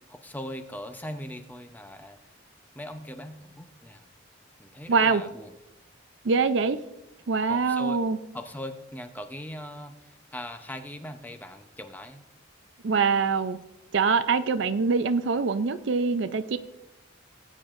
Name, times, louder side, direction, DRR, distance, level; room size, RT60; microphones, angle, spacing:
voice 1, 0.1-2.3 2.7-4.1 4.6-5.5 7.5-8.0 8.3-12.2, left 1 dB, 10° left, 7 dB, 0.7 m, -40 dB
voice 2, 4.9-5.2 6.2-6.8 7.3-8.2 12.8-13.6 13.9-16.6, right 4 dB, 65° right, 12 dB, 0.5 m, -24 dB
19.0 x 9.0 x 2.5 m, 0.93 s
head